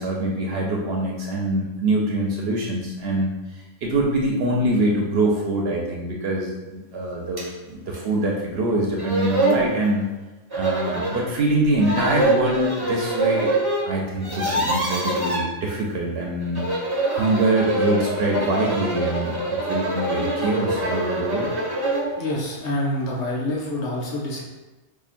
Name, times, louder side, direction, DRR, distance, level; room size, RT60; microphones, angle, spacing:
voice 1, 0.0-3.3 3.8-10.0 10.5-13.5 13.8-16.6 17.1-21.5, right 1 dB, 65° right, -1 dB, 0.8 m, -24 dB
sound 1, 7.4-7.5 7.9-8.0 8.7-8.8 9.0-9.6 10.5-11.2 11.8-13.8 14.1-15.4 16.4-22.1, right 2 dB, 25° right, 0.7 m, -24 dB
voice 2, 22.2-24.4, left 1 dB, 80° left, -4 dB, 1.2 m, -26 dB
5.5 x 2.4 x 2.5 m, 1.1 s
omnidirectional pair, 1.2 m